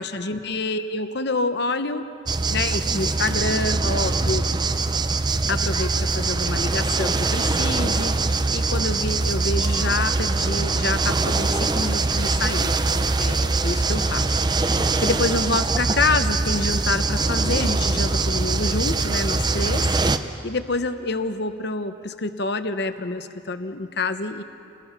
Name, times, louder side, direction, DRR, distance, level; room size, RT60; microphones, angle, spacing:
voice 1, 0.0-2.0 2.5-4.4 5.5-8.2 8.5-14.4 15.0-19.8 20.4-24.4, left 3 dB, 55° left, 10 dB, 0.9 m, -27 dB
sound 1, 2.3-20.2, right 3 dB, 20° right, 0.6 m, -23 dB
29.5 x 20.5 x 5.8 m, 2.7 s
head